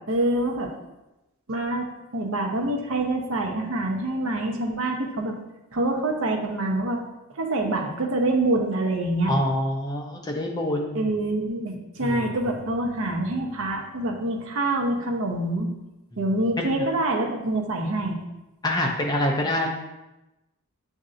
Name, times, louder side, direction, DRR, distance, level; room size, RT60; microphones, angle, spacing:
voice 1, 0.1-0.7 1.5-1.9 2.1-5.4 5.7-7.0 7.4-9.3 10.9-15.7 16.2-18.2, right 2 dB, 65° right, 1 dB, 0.7 m, -26 dB
voice 2, 9.3-11.2 12.0-12.5 16.1-16.2 16.6-16.8 17.9-18.0 18.6-19.7, left 1 dB, 15° left, 1 dB, 0.4 m, -26 dB
7.3 x 2.6 x 2.5 m, 0.98 s
head